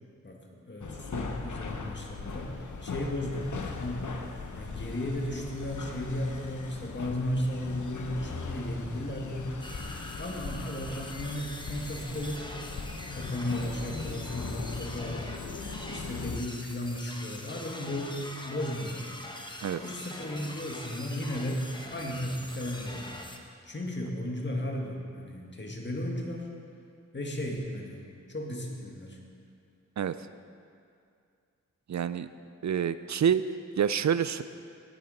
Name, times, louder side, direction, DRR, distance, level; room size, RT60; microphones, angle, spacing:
voice 1, 0.2-4.1 4.6-9.5 10.2-12.4 13.1-15.3 15.9-19.1 19.8-23.1 23.7-26.5 27.1-28.0 28.3-29.2, left 1 dB, 40° left, -1 dB, 1.9 m, -35 dB
sound 1, 0.8-16.4, left 4 dB, 80° left, 0.9 m, -39 dB
sound 2, 9.6-23.4, left 1 dB, 15° left, 1.1 m, -43 dB
voice 2, 31.9-32.3 32.6-33.4 33.8-34.4, right 8 dB, 70° right, 13 dB, 0.4 m, -27 dB
18.0 x 7.1 x 5.2 m, 2.4 s
wide cardioid pair, 75°, 30 cm